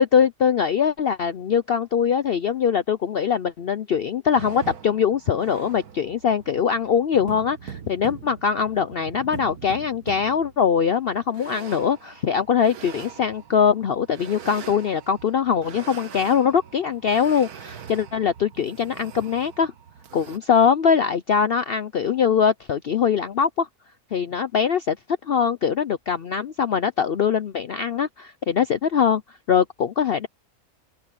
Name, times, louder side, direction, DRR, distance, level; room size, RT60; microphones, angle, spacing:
voice 1, 0.0-19.7 20.1-23.7 24.1-25.0 25.2-29.2 29.5-30.3, left 7 dB, 60° left, 0.6 m, -22 dB
sound 1, 4.3-20.4, right 8 dB, 85° right, 1.7 m, -42 dB
open air
omnidirectional pair, 1.6 m